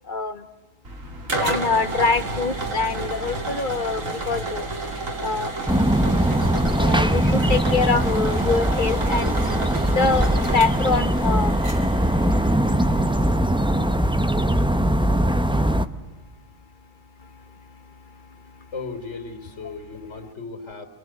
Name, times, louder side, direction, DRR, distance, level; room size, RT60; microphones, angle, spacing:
voice 1, 0.0-0.4 1.4-4.7 5.2-5.5 6.7-9.4 9.8-11.6, left 4 dB, 40° left, 11 dB, 1.3 m, -24 dB
sound 1, 0.8-13.3, right 2 dB, 75° right, 3.1 m, -31 dB
sound 2, 5.7-15.9, right 1 dB, 5° right, 0.7 m, -21 dB
voice 2, 18.7-20.9, left 4 dB, 60° left, 5 dB, 3.8 m, -36 dB
29.5 x 21.5 x 7.9 m, 1.2 s
omnidirectional pair, 1.4 m